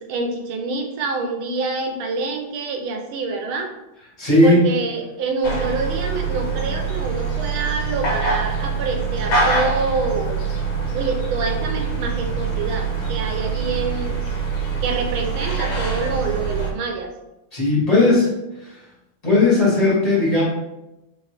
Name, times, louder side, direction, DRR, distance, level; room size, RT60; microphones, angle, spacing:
voice 1, 0.1-3.7 4.4-10.4 10.9-14.2 14.8-17.1, right 4 dB, 80° right, 3 dB, 1.5 m, -26 dB
voice 2, 4.2-4.7 17.5-18.3 18.6-18.7 19.2-20.4, left 2 dB, 20° left, -6 dB, 1.3 m, -16 dB
sound 1, 5.4-16.7, right 4 dB, 60° left, 1.3 m, -24 dB
4.5 x 2.9 x 3.3 m, 0.93 s
omnidirectional pair, 2.3 m